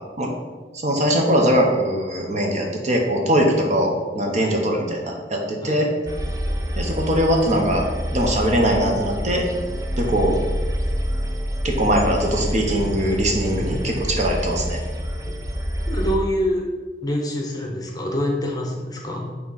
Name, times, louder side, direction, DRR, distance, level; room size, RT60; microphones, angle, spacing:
voice 1, 0.7-5.9 6.8-7.8 8.1-9.4 10.0-10.4 11.6-14.8, equal, 40° right, 1 dB, 0.9 m, -21 dB
sound 1, 6.1-16.2, equal, 20° right, 0.5 m, -27 dB
voice 2, 13.5-13.9 15.2-15.3 15.9-16.7 17.0-19.3, equal, 20° left, 0 dB, 0.9 m, -26 dB
6.1 x 3.1 x 5.6 m, 1.4 s
head